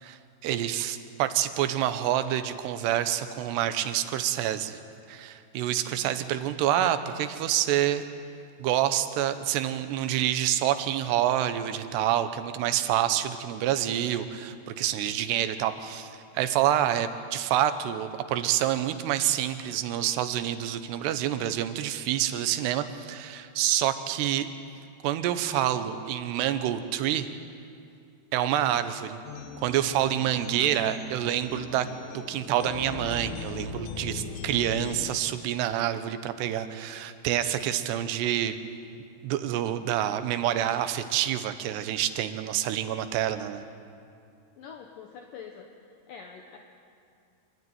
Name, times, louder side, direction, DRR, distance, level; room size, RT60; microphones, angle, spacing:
voice 1, 0.0-4.8 5.1-8.0 8.6-24.5 25.0-27.3 28.3-29.2 29.6-31.9 32.1-38.6 39.2-43.6, right 11 dB, 85° right, 10 dB, 3.0 m, -27 dB
voice 2, 5.9-6.3 28.7-28.8 44.6-45.7 46.1-46.6, left 6 dB, 70° left, 3 dB, 2.4 m, -45 dB
sound 1, 29.3-35.1, left 7 dB, 90° left, 3.3 m, -40 dB
27.0 x 12.0 x 9.4 m, 2.5 s
omnidirectional pair, 4.8 m